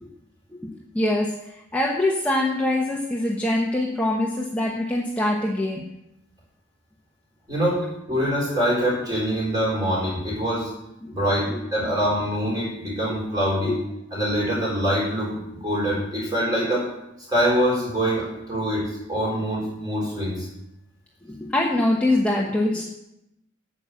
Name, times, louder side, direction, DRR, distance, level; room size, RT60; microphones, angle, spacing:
voice 1, 0.5-5.8 11.0-11.1 11.5-11.6 13.1-13.2 13.6-13.8 21.3-22.9, left 1 dB, 5° left, -3 dB, 1.0 m, -24 dB
voice 2, 7.5-10.7 11.1-13.8 14.1-16.9 17.3-20.5, equal, 20° right, -5 dB, 4.6 m, -24 dB
9.3 x 6.5 x 7.9 m, 0.86 s
head